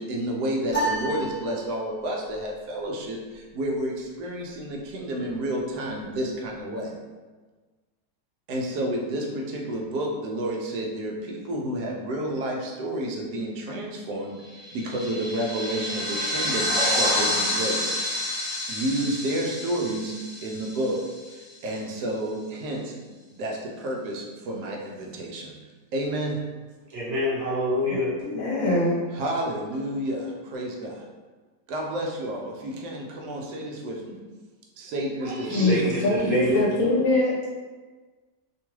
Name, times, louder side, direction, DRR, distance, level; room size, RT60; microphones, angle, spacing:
voice 1, 0.0-6.9 8.5-14.4 14.7-18.0 18.7-20.2 20.4-21.0 21.3-22.9 23.3-25.5 25.9-26.4 29.1-31.0 31.7-34.2 34.8-35.9, right 1 dB, 85° right, 0 dB, 1.2 m, -30 dB
sound 1, 0.7-2.2, right 1 dB, 15° left, 0.4 m, -30 dB
sound 2, 14.5-21.4, left 1 dB, 40° left, 0.9 m, -28 dB
voice 2, 26.9-28.2 35.2-36.7, equal, 60° right, -7 dB, 1.3 m, -27 dB
voice 3, 28.2-29.0 35.4-37.3, left 2 dB, 65° left, -4 dB, 1.0 m, -23 dB
2.9 x 2.3 x 3.0 m, 1.3 s
omnidirectional pair, 1.7 m